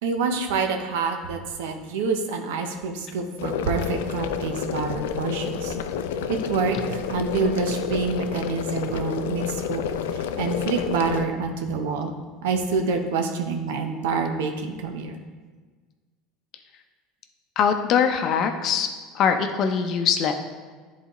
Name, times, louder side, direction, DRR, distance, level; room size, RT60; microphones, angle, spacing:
voice 1, 0.0-5.7 6.3-9.8 10.1-12.1 12.4-15.2, right 4 dB, 85° right, 5 dB, 0.7 m, -27 dB
sound 1, 3.4-11.3, left 7 dB, 90° left, 0.3 m, -29 dB
voice 2, 17.6-18.9 19.1-20.3, left 7 dB, 50° left, 6 dB, 0.6 m, -22 dB
9.9 x 4.0 x 3.1 m, 1.4 s
supercardioid pair, 115°, 0 cm